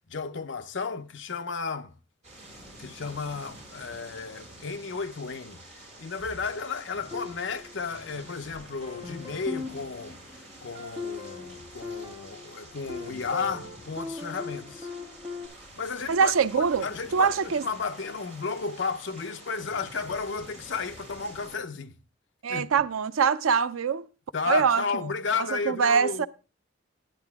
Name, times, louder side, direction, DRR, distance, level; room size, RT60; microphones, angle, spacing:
voice 1, 0.1-1.9 2.8-10.2 10.6-14.9 15.7-22.0 22.5-22.8 24.3-26.3, left 5 dB, 60° left, 0.7 m, -33 dB
sound 1, 2.2-21.6, right 1 dB, 35° right, 4.3 m, -48 dB
sound 2, 7.1-8.4 8.8-15.5, left 4 dB, 20° right, 1.4 m, -40 dB
voice 2, 16.1-16.9 17.1-17.6 22.4-24.1 24.5-24.8 25.7-26.3, right 6 dB, 90° right, 0.5 m, -23 dB
10.5 x 9.7 x 3.5 m
head